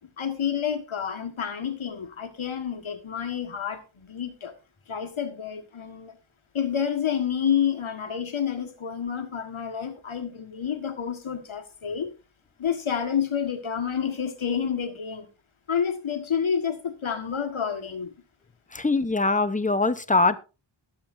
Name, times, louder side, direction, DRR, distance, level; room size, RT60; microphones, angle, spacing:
voice 1, 0.2-4.5 4.9-6.1 6.5-12.1 12.6-15.3 15.7-18.1, left 8 dB, 90° left, 1.7 m, -29 dB
voice 2, 18.7-20.4, left 3 dB, 15° left, 0.8 m, -22 dB
20.5 x 7.5 x 2.6 m
wide cardioid pair, 85°, 47 cm